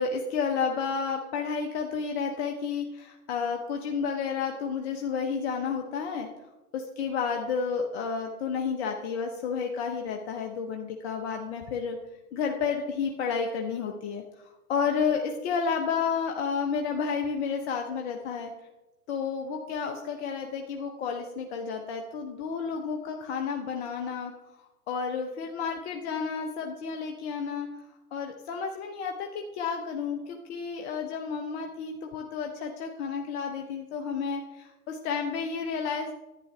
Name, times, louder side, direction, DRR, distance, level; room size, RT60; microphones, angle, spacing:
voice 1, 0.0-6.3 6.7-12.0 12.3-18.5 19.1-24.3 24.9-27.7 28.1-36.1, left 6 dB, 45° left, 3 dB, 1.0 m, -31 dB
11.5 x 9.4 x 3.3 m, 1.0 s
hypercardioid pair, 110°, 46 cm